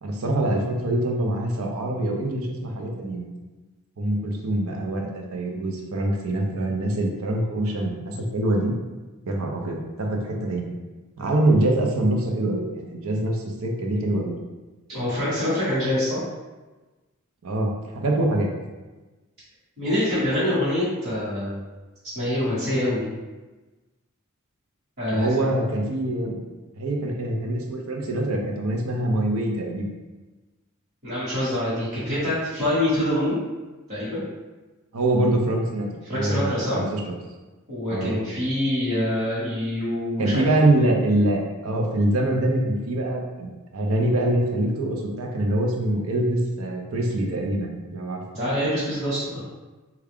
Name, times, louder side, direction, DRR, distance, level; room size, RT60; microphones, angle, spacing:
voice 1, 0.0-3.3 4.0-8.7 9.3-10.7 11.2-14.3 17.4-18.5 25.1-26.4 26.8-29.9 34.9-35.9 36.1-37.0 37.9-38.1 40.2-48.2, right 1 dB, 80° right, 1 dB, 0.6 m, -24 dB
voice 2, 14.9-16.2 19.8-21.6 22.1-23.1 25.0-25.5 31.0-33.4 33.9-34.2 36.1-36.8 37.7-40.4 48.3-49.4, left 1 dB, 50° right, -12 dB, 1.2 m, -25 dB
3.4 x 2.3 x 3.5 m, 1.2 s
head